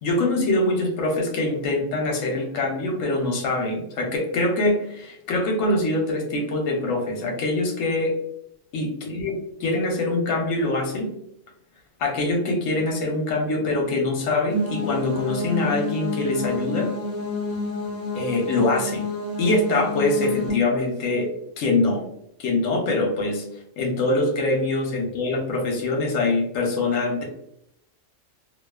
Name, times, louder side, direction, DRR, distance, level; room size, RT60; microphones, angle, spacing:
voice 1, 0.0-8.1 8.7-9.3 9.6-11.1 12.0-16.9 18.1-19.1 19.4-21.3 21.6-22.0 22.4-23.4 23.8-27.2, left 2 dB, 85° left, 1 dB, 1.0 m, -24 dB
sound 1, 14.5-20.5, left 3 dB, 15° left, 0.7 m, -29 dB
2.4 x 2.3 x 2.2 m, 0.75 s
omnidirectional pair, 1.3 m